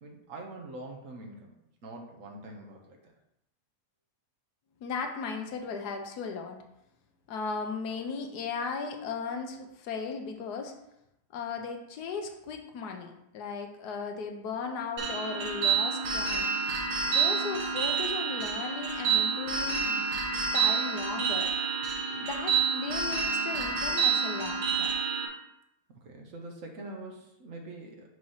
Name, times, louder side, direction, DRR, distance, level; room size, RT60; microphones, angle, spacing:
voice 1, 0.0-1.6 1.8-3.0 25.9-28.1, right 2 dB, 60° right, 1 dB, 1.2 m, -44 dB
voice 2, 4.8-6.6 7.3-10.7 11.3-16.5 17.1-21.5 22.1-24.9, left 5 dB, 80° left, 4 dB, 1.3 m, -37 dB
sound 1, 15.0-25.3, right 6 dB, 85° right, 1.6 m, -28 dB
6.2 x 2.9 x 5.5 m, 0.83 s
omnidirectional pair, 1.7 m